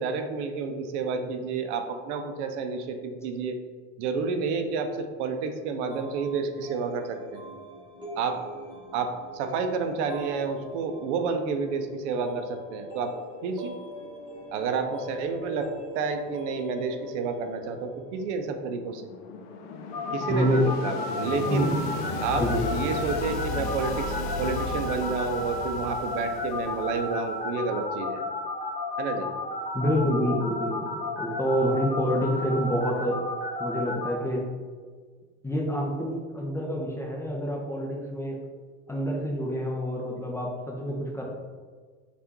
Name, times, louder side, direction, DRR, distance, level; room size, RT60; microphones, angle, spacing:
voice 1, 0.0-3.6 4.0-7.4 8.2-8.4 8.9-13.1 13.4-13.7 14.5-19.0 20.1-21.7 22.2-22.4 22.7-28.2 29.0-29.3, right 5 dB, 75° right, 6 dB, 0.5 m, -30 dB
sound 1, 5.9-18.5, equal, 15° right, 1.1 m, -43 dB
sound 2, 18.4-27.3, left 4 dB, 60° left, 0.5 m, -35 dB
sound 3, 19.9-34.1, left 3 dB, 25° left, 1.3 m, -33 dB
voice 2, 20.3-20.6 21.5-21.8 22.4-22.7 29.7-33.2 33.6-34.4 35.4-38.4 38.9-41.2, equal, 10° left, -2 dB, 0.4 m, -27 dB
3.4 x 2.5 x 2.9 m, 1.5 s
hypercardioid pair, 100°, 36 cm